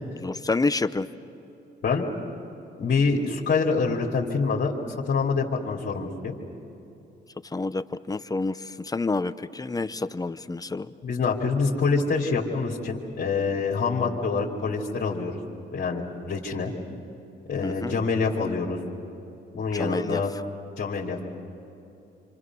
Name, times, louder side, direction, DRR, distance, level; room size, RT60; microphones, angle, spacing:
voice 1, 0.2-1.1 7.5-10.9 17.6-17.9 19.7-20.2, left 3 dB, 20° left, 12 dB, 0.8 m, -28 dB
voice 2, 2.8-4.7 5.0-6.4 11.0-15.4 15.7-16.7 17.5-18.8 19.5-20.3 20.8-21.2, left 4 dB, 55° left, -3 dB, 2.9 m, -26 dB
27.0 x 26.5 x 6.2 m, 2.9 s
cardioid pair, 90°, 20 cm